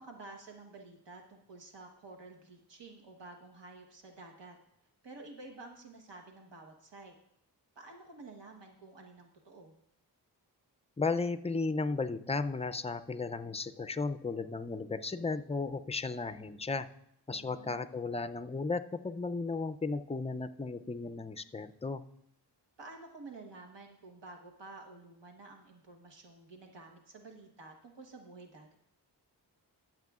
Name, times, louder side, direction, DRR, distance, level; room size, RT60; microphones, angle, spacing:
voice 1, 0.0-4.6 5.0-7.1 7.7-9.7 17.3-18.0 22.8-28.8, right 3 dB, 85° right, 2 dB, 1.2 m, -51 dB
voice 2, 11.0-16.9 17.3-22.0, left 3 dB, 15° left, 11 dB, 0.3 m, -35 dB
21.5 x 7.5 x 2.4 m, 0.77 s
wide cardioid pair, 130°, 42 cm